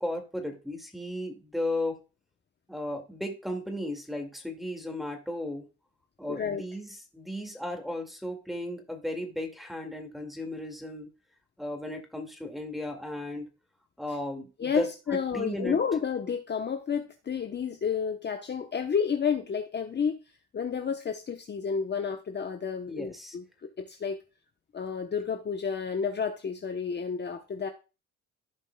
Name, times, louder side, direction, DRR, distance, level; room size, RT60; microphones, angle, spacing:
voice 1, 0.0-2.0 2.7-5.7 6.2-11.1 11.6-13.5 14.0-15.8 22.9-23.4, left 1 dB, ahead, 2 dB, 2.0 m, -35 dB
voice 2, 6.3-6.6 14.6-20.2 20.5-23.4 23.8-24.2 24.7-27.7, left 6 dB, 35° left, 5 dB, 0.8 m, -30 dB
14.5 x 5.3 x 2.2 m, 0.31 s
cardioid pair, 90°, 30 cm